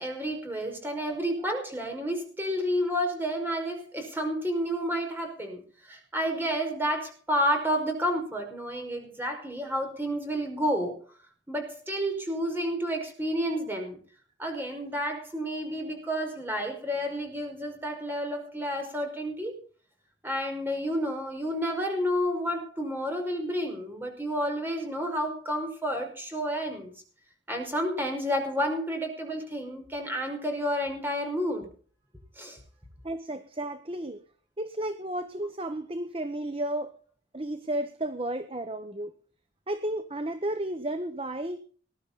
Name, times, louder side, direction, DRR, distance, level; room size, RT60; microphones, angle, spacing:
voice 1, 0.0-11.0 11.5-14.0 14.4-19.6 20.2-26.9 27.5-31.7 32.4-32.6, equal, 10° right, 3 dB, 5.3 m, -30 dB
voice 2, 33.0-34.2 34.6-37.0 37.3-39.1 39.7-41.6, right 1 dB, 30° right, 9 dB, 1.0 m, -33 dB
20.5 x 11.5 x 4.2 m, 0.42 s
head